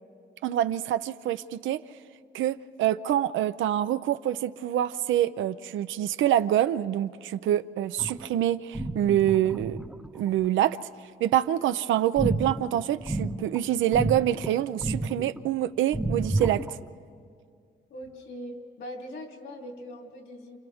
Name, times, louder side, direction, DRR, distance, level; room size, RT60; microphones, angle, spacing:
voice 1, 0.4-1.8 2.3-9.8 10.1-10.8 11.2-16.6, right 12 dB, 75° right, 13 dB, 0.6 m, -26 dB
sound 1, 8.0-8.4 8.7-10.5 12.2-13.6 13.9-14.5 14.8-15.5 15.9-16.8, right 2 dB, 5° right, 0.9 m, -31 dB
voice 2, 17.9-20.6, equal, 65° left, 1 dB, 3.3 m, -41 dB
30.0 x 28.0 x 3.6 m, 2.2 s
cardioid pair, 90°, 20 cm